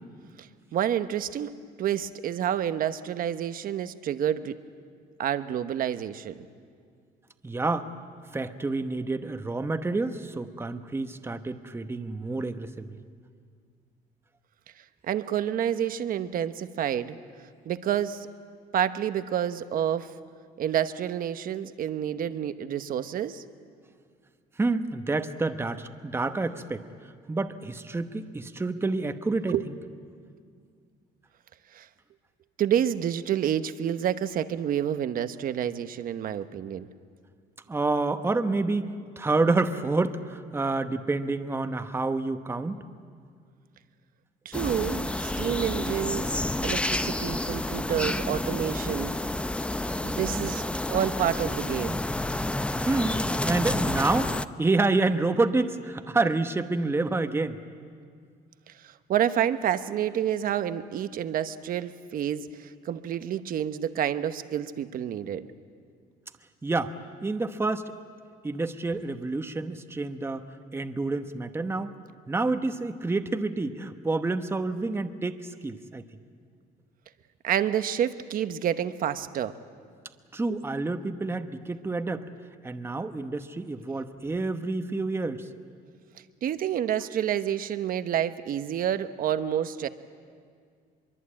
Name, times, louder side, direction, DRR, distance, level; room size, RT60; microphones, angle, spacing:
voice 1, 0.7-4.6 5.2-6.3 15.1-17.2 17.6-18.3 18.7-20.1 20.6-23.4 29.5-29.6 31.7-31.9 32.6-36.9 44.4-49.1 50.0-52.0 58.7-65.5 77.4-79.6 86.4-89.9, right 10 dB, 55° right, 11 dB, 1.0 m, -29 dB
voice 2, 7.4-7.9 8.3-12.9 24.6-26.8 27.3-29.7 37.7-42.8 52.9-54.3 54.6-57.6 66.6-66.9 67.2-67.9 68.4-71.9 72.3-76.0 80.3-82.2 82.6-85.5, right 3 dB, 15° right, 8 dB, 1.0 m, -28 dB
sound 1, 44.5-54.5, left 1 dB, 5° left, 0.6 m, -29 dB
23.5 x 23.0 x 8.7 m, 2.1 s
cardioid pair, 110°, 17 cm